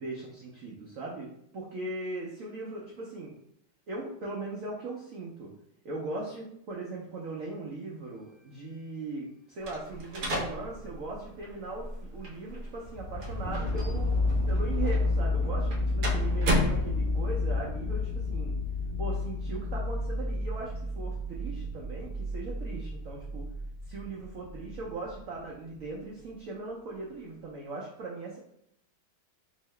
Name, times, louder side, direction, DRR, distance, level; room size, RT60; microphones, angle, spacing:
voice 1, 0.0-3.3 3.9-5.5 5.8-14.2 14.5-18.5 19.0-23.5 23.8-28.4, right 3 dB, 85° right, -3 dB, 0.7 m, -39 dB
sound 1, 9.6-17.4, equal, 60° right, 1.0 m, -34 dB
sound 2, 12.8-25.2 25.8-25.9, left 2 dB, 70° left, 0.5 m, -31 dB
3.7 x 2.8 x 3.2 m, 0.73 s
omnidirectional pair, 2.2 m